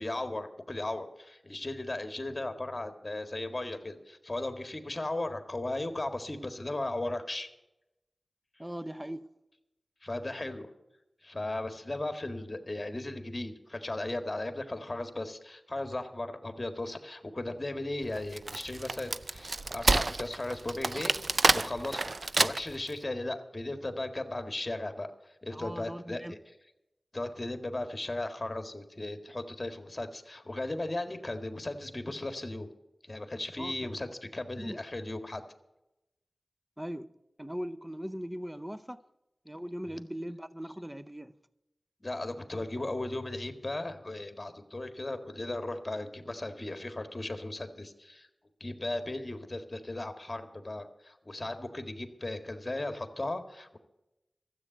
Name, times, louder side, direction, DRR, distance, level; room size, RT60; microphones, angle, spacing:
voice 1, 0.0-7.5 10.0-10.7 11.2-21.2 21.5-26.4 27.1-32.7 33.0-35.4 39.8-40.0 42.0-48.3 48.6-53.8, left 2 dB, 35° left, 1.7 m, -36 dB
voice 2, 8.6-9.3 25.5-26.3 33.6-33.8 34.6-34.8 36.8-37.1 37.4-39.0 39.4-41.4, equal, 10° right, 0.7 m, -39 dB
Wood, 18.1-22.9, right 3 dB, 60° right, 0.4 m, -28 dB
13.5 x 8.1 x 9.0 m
cardioid pair, 45°, 0 cm